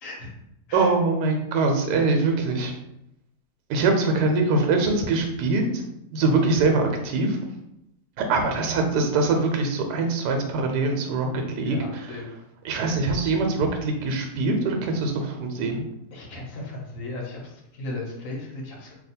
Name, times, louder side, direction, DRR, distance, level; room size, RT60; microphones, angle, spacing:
voice 1, 0.0-0.3 0.7-0.9 3.7-3.8 4.1-4.3 11.6-12.3 16.1-18.9, left 2 dB, 60° left, -2 dB, 1.2 m, -36 dB
voice 2, 0.7-2.7 3.7-5.8 6.1-7.4 8.2-12.2 12.6-15.8, right 3 dB, 85° right, 4 dB, 1.2 m, -23 dB
2.8 x 2.3 x 4.2 m, 0.82 s
omnidirectional pair, 1.7 m